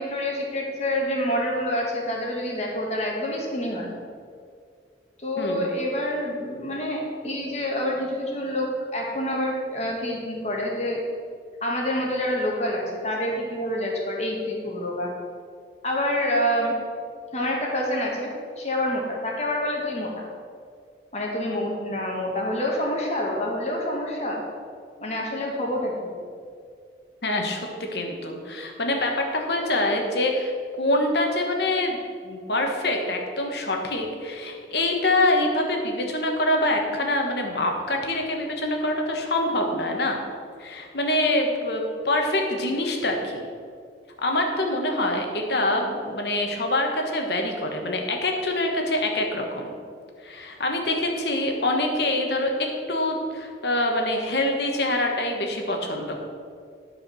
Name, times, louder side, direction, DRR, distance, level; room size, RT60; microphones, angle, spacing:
voice 1, 0.0-3.9 5.2-11.0 11.6-15.1 15.8-16.7 17.3-18.3 18.6-20.3 21.1-24.4 25.0-26.1, left 1 dB, 40° left, -1 dB, 1.8 m, -27 dB
voice 2, 5.4-5.7 27.2-27.6 27.9-40.2 40.6-43.5 44.2-49.7 50.2-56.2, left 1 dB, 70° left, 2 dB, 1.3 m, -25 dB
11.0 x 4.9 x 6.3 m, 2.2 s
head